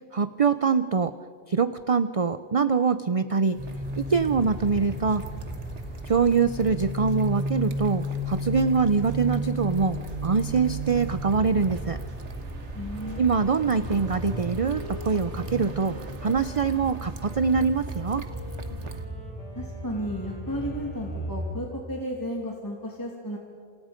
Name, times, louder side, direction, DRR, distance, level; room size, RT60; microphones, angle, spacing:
voice 1, 0.1-1.1 1.5-3.6 4.0-5.3 6.1-12.0 13.2-18.2, right 5 dB, 40° right, 12 dB, 0.6 m, -24 dB
sound 1, 3.5-19.1, right 4 dB, 75° right, 1.7 m, -44 dB
sound 2, 3.6-21.5, equal, 10° right, 7.4 m, -34 dB
voice 2, 12.7-13.2 19.5-23.4, equal, 15° left, -1 dB, 2.7 m, -33 dB
Wind instrument woodwind instrument, 12.9-21.8, left 1 dB, 85° left, 6.3 m, -47 dB
28.0 x 27.5 x 5.2 m, 2.4 s
omnidirectional pair, 1.2 m